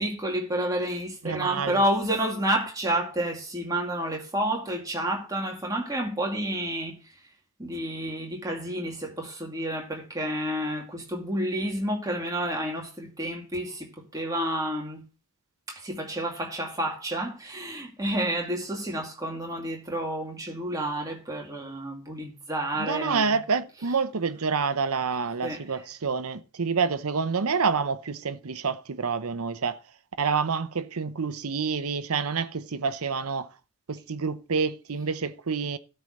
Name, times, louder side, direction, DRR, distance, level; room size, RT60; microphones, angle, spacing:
voice 1, 0.0-6.9 7.6-15.0 15.7-23.4 25.4-25.6, right 1 dB, 15° right, 2.3 m, -30 dB
voice 2, 1.2-1.8 22.8-29.8 30.2-33.5 33.9-35.8, right 5 dB, 90° right, 0.8 m, -28 dB
13.0 x 4.5 x 6.5 m
head